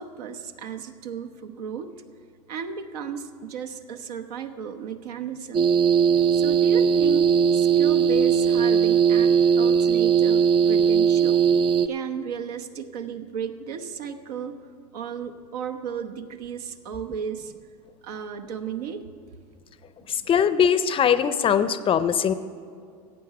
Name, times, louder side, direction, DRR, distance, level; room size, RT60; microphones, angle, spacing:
voice 1, 0.0-1.9 2.5-5.7 6.3-11.4 11.9-14.6 14.9-17.6 18.0-19.0 20.0-20.3, right 7 dB, 75° right, 6 dB, 1.0 m, -34 dB
sound 1, 5.5-11.9, right 7 dB, 25° right, 0.4 m, -19 dB
voice 2, 20.1-22.3, left 8 dB, 25° left, 13 dB, 0.5 m, -21 dB
15.0 x 8.4 x 5.9 m, 2.2 s
hypercardioid pair, 105°, 20 cm